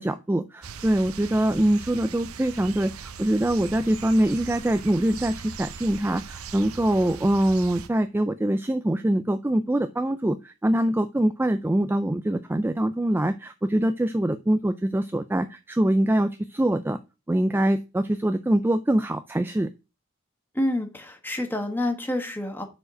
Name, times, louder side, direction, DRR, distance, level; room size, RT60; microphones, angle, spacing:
voice 1, 0.0-17.0 17.3-19.7, right 1 dB, 10° right, 10 dB, 0.3 m, -24 dB
sound 1, 0.6-7.9, right 6 dB, 75° right, 0.7 m, -40 dB
voice 2, 20.5-22.6, left 1 dB, 10° left, 4 dB, 1.4 m, -28 dB
6.5 x 4.9 x 6.2 m, 0.29 s
head